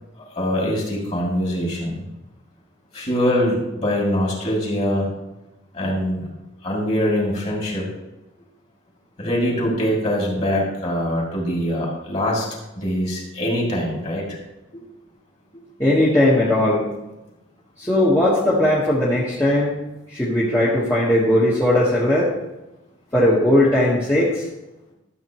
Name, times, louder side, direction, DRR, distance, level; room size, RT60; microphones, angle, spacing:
voice 1, 0.4-2.0 2.9-5.1 5.7-6.3 6.6-7.9 9.2-12.5 12.8-14.4, equal, 35° left, -3 dB, 2.6 m, -23 dB
voice 2, 15.8-16.9 17.8-19.7 20.1-22.3 23.1-24.5, left 1 dB, 10° left, -8 dB, 1.3 m, -18 dB
12.5 x 7.6 x 3.0 m, 1.0 s
head